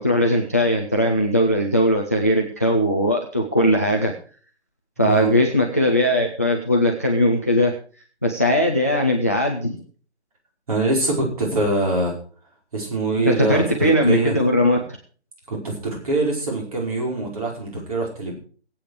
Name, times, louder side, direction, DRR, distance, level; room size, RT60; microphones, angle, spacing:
voice 1, 0.0-4.1 5.0-7.7 8.2-9.8 13.3-14.8, equal, 15° left, 1 dB, 0.6 m, -19 dB
voice 2, 5.0-5.3 10.7-12.1 12.7-14.4 15.5-18.3, right 2 dB, 30° right, 0 dB, 5.0 m, -24 dB
18.0 x 8.7 x 4.9 m, 0.41 s
figure-of-eight pair, 155°, 34 cm